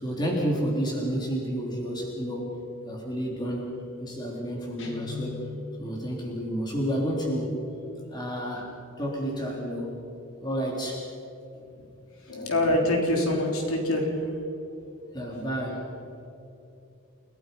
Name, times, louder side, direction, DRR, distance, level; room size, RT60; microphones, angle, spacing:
voice 1, 0.0-2.5 2.8-3.7 4.0-5.4 5.8-7.5 8.1-8.7 9.0-9.9 10.4-11.1 15.1-15.9, equal, 20° left, -2 dB, 3.6 m, -30 dB
Guitar, 4.8-5.9, left 4 dB, 55° left, 2.9 m, -38 dB
voice 2, 12.3-14.1, left 1 dB, 75° left, 1 dB, 3.7 m, -24 dB
29.5 x 18.0 x 5.5 m, 2.8 s
head